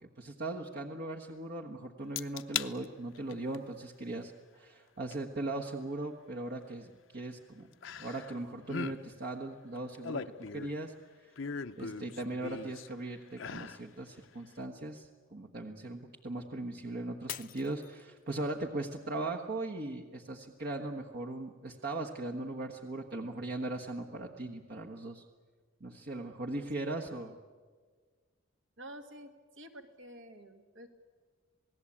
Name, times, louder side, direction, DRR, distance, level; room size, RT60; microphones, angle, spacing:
voice 1, 0.0-7.7 8.0-11.3 11.8-25.2 25.8-27.4, right 2 dB, 55° right, 1 dB, 1.4 m, -39 dB
sound 1, 2.2-2.7 3.2-3.6 5.1-5.2 7.8-8.4 8.6-9.0 9.8-10.8 11.4-12.9 13.3-13.8 14.2-14.3, left 6 dB, 75° left, 0.8 m, -39 dB
Shatter, 17.3-18.6 19.1-19.6 20.1-20.2, left 11 dB, 45° left, 0.6 m, -45 dB
voice 2, 28.8-29.3 29.6-30.9, right 1 dB, 70° right, 6 dB, 2.1 m, -49 dB
27.5 x 18.5 x 8.7 m, 1.6 s
head